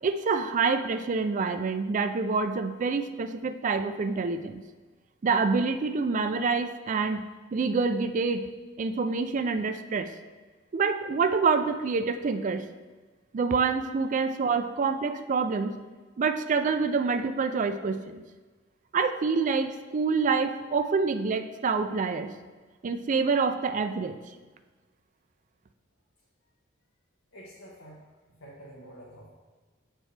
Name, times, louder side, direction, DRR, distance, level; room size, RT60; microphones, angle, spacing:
voice 1, 0.0-4.6 5.2-7.2 7.5-8.5 8.8-10.1 10.7-12.7 13.3-15.8 16.2-18.2 18.9-22.3 22.8-24.2, right 4 dB, 40° right, 9 dB, 0.3 m, -27 dB
voice 2, 27.3-29.3, right 1 dB, 80° left, -5 dB, 1.0 m, -48 dB
7.6 x 4.5 x 3.3 m, 1.3 s
head